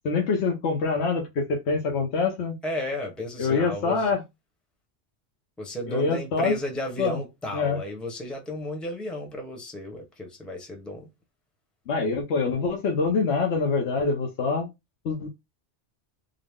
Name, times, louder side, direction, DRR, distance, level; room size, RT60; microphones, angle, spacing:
voice 1, 0.0-2.6 3.4-4.2 5.9-6.5 7.0-7.2 7.5-7.8 11.9-14.7 15.0-15.3, left 4 dB, 75° left, 1.1 m, -25 dB
voice 2, 2.6-4.1 5.6-11.1, left 1 dB, ahead, 0.8 m, -33 dB
3.8 x 2.0 x 3.5 m
omnidirectional pair, 1.1 m